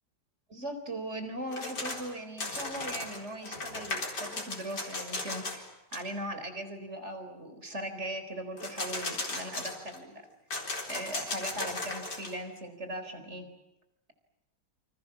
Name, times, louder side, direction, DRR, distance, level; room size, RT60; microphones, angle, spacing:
voice 1, 0.5-5.6 5.9-10.3 10.9-13.5, right 1 dB, 35° right, 8 dB, 4.4 m, -39 dB
sound 1, 1.5-2.1 2.4-5.7 5.9-6.0 8.6-10.0 10.5-12.4, left 2 dB, 65° left, 4.7 m, -36 dB
28.5 x 26.0 x 7.3 m, 0.93 s
omnidirectional pair, 2.0 m